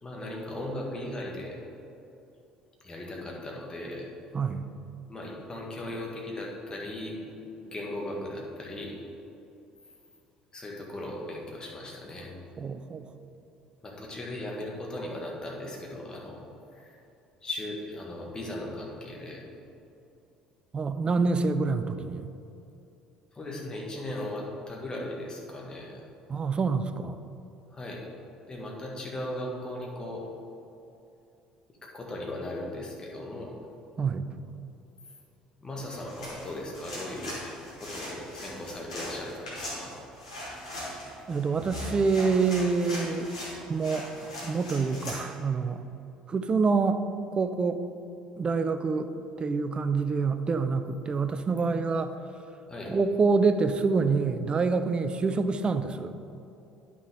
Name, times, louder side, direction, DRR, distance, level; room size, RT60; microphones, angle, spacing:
voice 1, 0.0-1.6 2.8-4.0 5.1-7.2 7.6-8.9 10.5-12.3 13.8-16.4 17.4-19.4 23.3-26.0 27.7-28.0 28.5-30.2 31.9-33.5 35.6-37.3 37.8-39.9 52.7-52.9, left 1 dB, 25° left, -2 dB, 1.7 m, -37 dB
voice 2, 4.3-4.6 12.6-13.0 20.7-22.3 26.3-27.2 34.0-34.3 41.3-43.3 43.7-45.8 46.3-47.0 47.3-47.8 48.4-52.2 52.9-56.1, right 4 dB, 30° right, 10 dB, 0.5 m, -26 dB
sound 1, 35.9-45.2, left 1 dB, 80° left, 1.5 m, -40 dB
10.0 x 6.0 x 3.7 m, 2.8 s
figure-of-eight pair, 55°, 3 cm